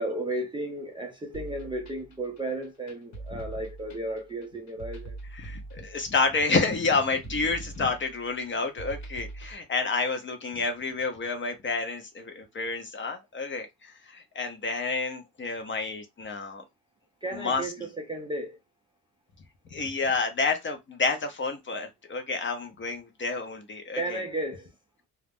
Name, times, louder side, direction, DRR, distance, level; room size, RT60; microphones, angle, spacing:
voice 1, 0.0-5.2 17.2-18.6 23.9-24.7, right 1 dB, 15° right, 0.4 m, -34 dB
sound 1, 1.3-9.5, right 2 dB, 50° left, 1.3 m, -43 dB
voice 2, 5.3-16.6 17.3-17.7 19.7-24.2, left 4 dB, 30° left, 0.6 m, -29 dB
2.3 x 2.0 x 3.5 m
cardioid pair, 115°, 37 cm